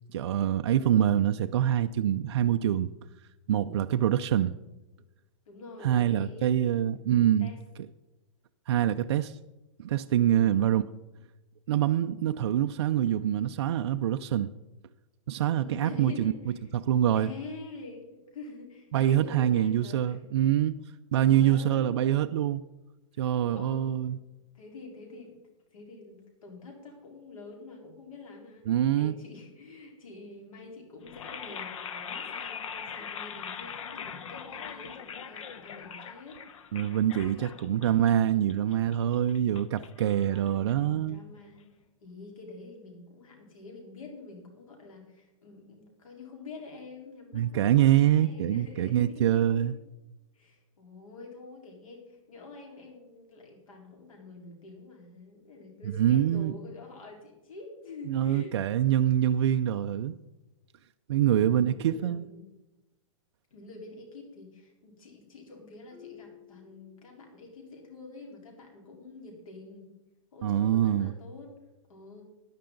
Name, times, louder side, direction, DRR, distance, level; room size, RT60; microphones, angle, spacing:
voice 1, 0.1-2.9 3.5-4.5 5.8-7.5 8.7-9.3 9.8-10.8 11.7-14.5 15.3-16.3 16.7-17.3 18.9-20.8 21.1-22.6 23.2-24.2 28.7-29.1 36.7-41.2 47.3-49.7 56.0-56.5 58.1-60.2 61.1-62.3 70.4-71.1, right 11 dB, 50° right, 0.4 m, -25 dB
voice 2, 5.5-6.9 7.4-7.6 10.3-10.7 15.5-16.6 17.1-20.3 21.1-22.2 23.1-23.2 23.5-24.2 24.5-25.4 25.7-36.4 37.2-37.7 40.3-41.7 42.0-49.7 50.3-58.5 61.6-62.5 63.5-69.9 70.3-71.5 71.9-72.2, left 3 dB, 90° left, 4.1 m, -47 dB
sound 1, 31.0-41.1, left 7 dB, 70° left, 1.0 m, -42 dB
Marimba xylophone, 65.9-67.6, left 12 dB, ahead, 3.0 m, -53 dB
14.5 x 10.5 x 3.9 m
hypercardioid pair, 175°, 17 cm